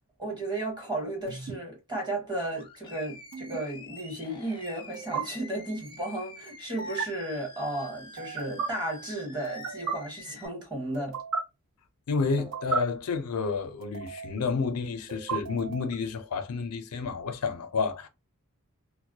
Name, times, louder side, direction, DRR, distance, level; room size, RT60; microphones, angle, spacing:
voice 1, 0.2-11.2, right 1 dB, 20° right, 1.2 m, -34 dB
sound 1, 1.3-1.6 3.3-3.6 4.9-5.2 6.8-7.1 8.2-8.7 9.4-9.9 10.9-11.4 12.3-12.8 13.8-14.4 15.1-16.0, right 5 dB, 65° right, 0.5 m, -34 dB
Animal, 2.5-10.5, left 3 dB, 20° left, 0.5 m, -48 dB
voice 2, 12.1-18.1, left 4 dB, 80° left, 0.4 m, -30 dB
2.2 x 2.0 x 2.7 m
head